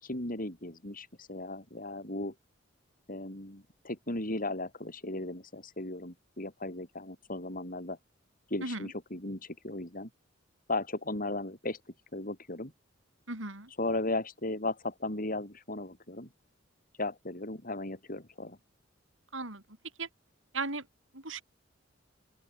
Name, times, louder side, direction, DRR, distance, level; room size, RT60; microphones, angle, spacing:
voice 1, 0.0-2.3 3.1-8.0 8.5-10.1 10.7-11.8 12.1-12.7 13.8-16.3 17.0-18.6, left 2 dB, 45° left, 7.7 m, -36 dB
voice 2, 13.3-13.7 19.3-19.6 20.0-20.1 20.5-20.8 21.1-21.4, right 3 dB, 80° right, 6.8 m, -36 dB
open air
head